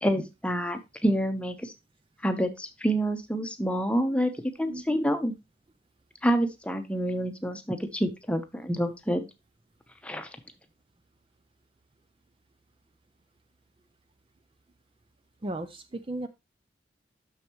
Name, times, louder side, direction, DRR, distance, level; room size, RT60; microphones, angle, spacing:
voice 1, 0.0-1.7 2.2-4.3 4.6-5.3 6.2-9.3 10.0-10.3, equal, 5° left, 7 dB, 0.9 m, -27 dB
voice 2, 15.4-16.3, right 1 dB, 30° right, 10 dB, 0.5 m, -35 dB
10.5 x 6.5 x 3.1 m, 0.24 s
head